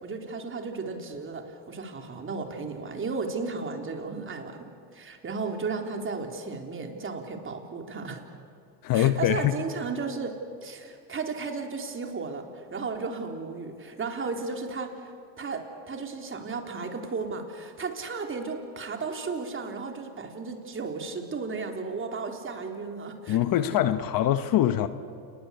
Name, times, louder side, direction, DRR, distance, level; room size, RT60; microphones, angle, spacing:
voice 1, 0.0-8.2 8.9-15.1 15.4-23.4, right 4 dB, 25° right, 3 dB, 3.9 m, -34 dB
voice 2, 8.8-9.5 23.3-24.9, left 12 dB, 45° left, 11 dB, 1.2 m, -23 dB
29.0 x 21.0 x 8.3 m, 2.5 s
supercardioid pair, 110°, 48 cm